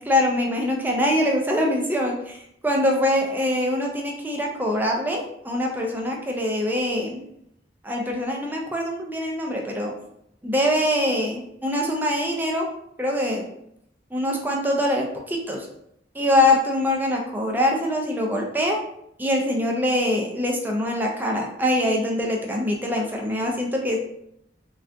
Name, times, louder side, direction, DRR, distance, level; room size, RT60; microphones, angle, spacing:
voice 1, 0.1-7.2 7.8-9.9 10.4-12.7 13.0-13.5 14.1-15.7 16.1-18.8 19.2-24.0, left 1 dB, 10° right, 0 dB, 0.4 m, -23 dB
3.3 x 2.3 x 2.5 m, 0.76 s
head